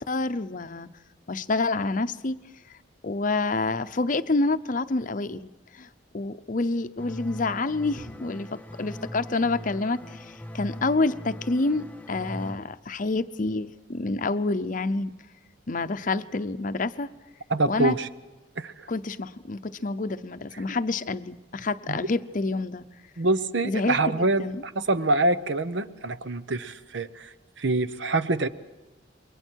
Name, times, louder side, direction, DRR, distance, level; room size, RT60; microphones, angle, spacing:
voice 1, 0.1-0.9 1.3-2.4 3.0-5.5 5.7-5.9 6.1-15.1 15.7-17.1 17.7-18.0 18.9-22.9 23.6-24.6, left 3 dB, 45° left, 11 dB, 0.7 m, -28 dB
sound 1, 7.0-12.6, equal, 10° left, 0.6 m, -40 dB
voice 2, 17.5-18.1 18.6-18.9 21.9-22.0 23.2-28.5, right 2 dB, 70° right, 13 dB, 0.9 m, -26 dB
28.5 x 22.5 x 4.6 m, 1.1 s
head